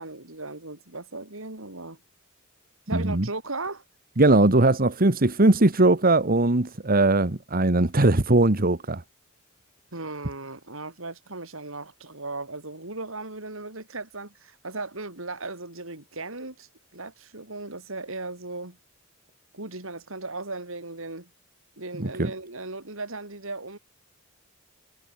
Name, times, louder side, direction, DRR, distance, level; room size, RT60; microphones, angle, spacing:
voice 1, 0.0-2.0 2.9-3.8 9.9-18.8 19.5-21.3 21.8-23.8, right 3 dB, 70° right, 4.9 m, -37 dB
voice 2, 2.9-3.3 4.2-9.0 22.0-22.3, right 2 dB, 45° right, 1.6 m, -20 dB
head